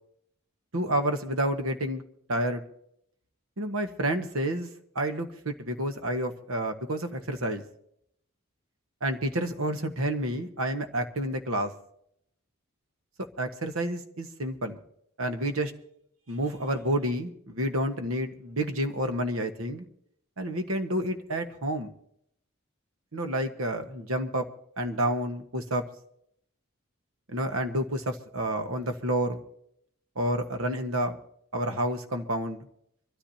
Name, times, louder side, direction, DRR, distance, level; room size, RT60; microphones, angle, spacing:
voice 1, 0.7-2.0 2.3-2.6 3.6-4.7 4.9-7.6 9.0-11.7 13.4-14.8 15.2-15.7 16.3-19.9 20.4-21.9 23.1-24.5 24.8-25.8 27.3-29.4 30.1-31.2 31.5-32.6, right 1 dB, 80° right, 6 dB, 1.4 m, -29 dB
25.0 x 13.5 x 2.8 m, 0.72 s
head